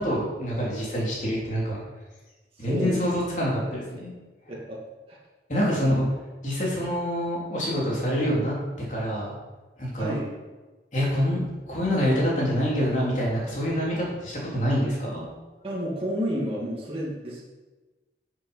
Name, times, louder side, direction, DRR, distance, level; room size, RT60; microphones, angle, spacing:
voice 1, 0.0-1.8 2.6-4.1 5.5-6.0 6.4-9.3 9.8-10.1 10.9-15.2, equal, 45° left, -4 dB, 3.5 m, -26 dB
voice 2, 4.5-4.8 5.1-5.2 5.8-6.1 10.0-10.3 15.6-17.4, equal, 30° right, -6 dB, 2.1 m, -30 dB
9.6 x 7.4 x 5.7 m, 1.2 s
head